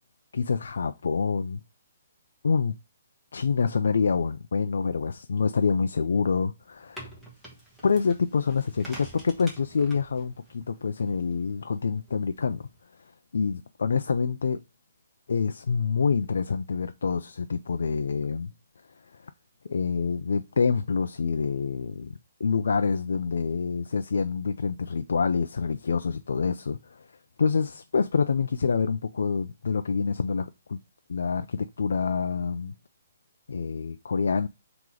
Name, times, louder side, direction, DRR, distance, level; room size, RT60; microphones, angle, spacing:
voice 1, 0.3-1.6 2.4-2.8 3.3-7.1 7.8-12.6 13.0-14.6 15.3-18.5 19.1-19.3 19.7-27.1 27.4-30.8 31.1-32.7 33.5-34.5, left 5 dB, 75° left, 0.4 m, -27 dB
sound 1, 6.6-12.8, equal, ahead, 1.1 m, -48 dB
3.8 x 2.9 x 4.7 m
hypercardioid pair, 170°, 0 cm